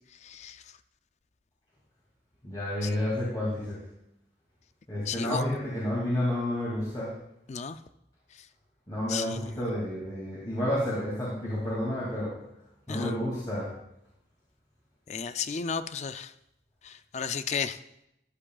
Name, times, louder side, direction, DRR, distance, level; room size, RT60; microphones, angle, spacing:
voice 1, 0.2-0.6 2.8-2.9 5.1-5.4 7.5-7.8 9.1-9.4 12.9-13.1 15.1-16.3 16.8-17.8, left 6 dB, 40° left, 12 dB, 0.4 m, -33 dB
voice 2, 2.4-3.8 4.9-7.1 8.9-12.4 12.9-13.7, left 1 dB, 25° left, -6 dB, 2.4 m, -30 dB
13.5 x 9.9 x 2.4 m, 0.83 s
head